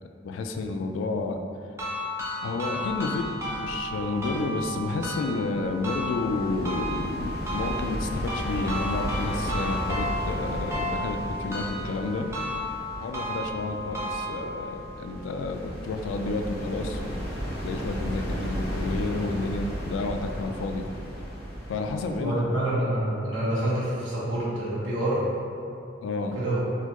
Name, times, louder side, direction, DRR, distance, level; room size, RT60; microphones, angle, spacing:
voice 1, 0.2-1.4 2.4-12.3 13.0-17.3 17.6-20.9 21.7-22.3 26.0-26.4, left 3 dB, 80° left, 6 dB, 0.3 m, -30 dB
sound 1, 1.8-14.7, equal, 15° right, 0.5 m, -33 dB
sound 2, 2.8-22.2, equal, 55° left, 1.0 m, -35 dB
voice 2, 22.2-25.2 26.3-26.6, right 1 dB, 90° right, -8 dB, 1.1 m, -27 dB
4.1 x 2.3 x 2.9 m, 2.6 s
head